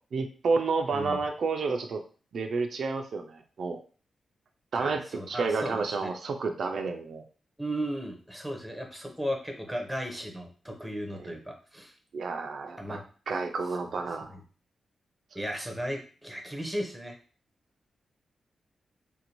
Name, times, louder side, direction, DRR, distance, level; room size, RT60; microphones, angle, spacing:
voice 1, 0.1-2.0 2.3-3.8 4.7-7.2 11.2-11.3 12.1-13.0 13.3-14.4, right 4 dB, 60° right, 4 dB, 0.3 m, -30 dB
voice 2, 0.9-1.2 4.8-6.1 7.6-11.9 12.8-13.0 14.3-14.4 15.3-17.2, equal, ahead, 2 dB, 0.7 m, -35 dB
3.7 x 2.6 x 2.9 m, 0.39 s
wide cardioid pair, 150°, 0 cm